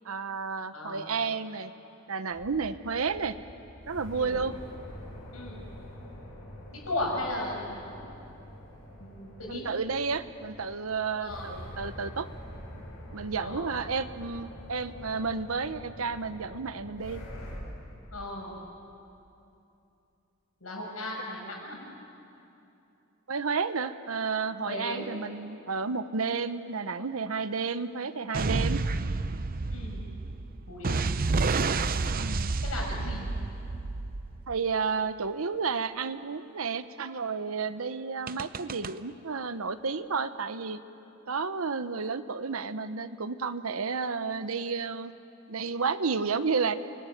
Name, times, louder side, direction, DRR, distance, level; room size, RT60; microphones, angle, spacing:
voice 1, 0.0-1.7 2.1-3.3 3.9-4.5 9.5-12.3 13.1-17.2 23.3-28.8 32.2-32.5 34.5-40.8 41.3-45.1 45.5-46.7, right 5 dB, 85° right, 11 dB, 0.9 m, -31 dB
voice 2, 0.7-1.0 4.1-4.4 5.3-5.6 6.7-8.1 9.0-9.6 11.2-11.5 13.4-13.7 18.1-18.5 20.6-21.8 24.6-25.1 29.7-30.0 30.7-31.1 32.6-33.2, left 1 dB, 90° left, -1 dB, 7.0 m, -36 dB
sound 1, 2.3-17.6, equal, 70° left, 7.2 m, -45 dB
sound 2, 28.3-34.7 38.3-38.9, right 3 dB, 45° right, 0.6 m, -30 dB
29.0 x 19.0 x 9.2 m, 2.8 s
head